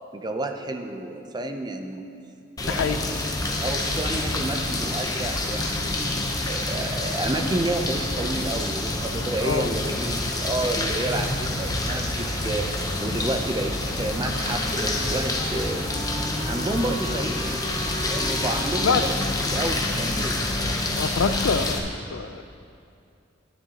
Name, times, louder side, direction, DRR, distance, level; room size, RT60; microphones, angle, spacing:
voice 1, 0.1-2.1 2.6-3.2 3.6-6.2 6.4-12.7 13.0-15.9 16.5-17.6 18.1-19.1 19.5-20.4, right 2 dB, 20° right, 5 dB, 0.5 m, -30 dB
sound 1, 2.6-21.8, left 2 dB, 20° left, 0.7 m, -27 dB
voice 2, 2.7-3.0 9.4-9.7 18.8-19.0 21.0-21.8 22.1-22.4, left 6 dB, 75° left, 10 dB, 0.4 m, -25 dB
sound 2, 8.9-15.7, right 1 dB, 80° right, 1.3 m, -40 dB
Wind instrument woodwind instrument, 13.9-21.2, equal, 35° left, 1.8 m, -38 dB
11.5 x 9.7 x 2.9 m, 2.5 s
head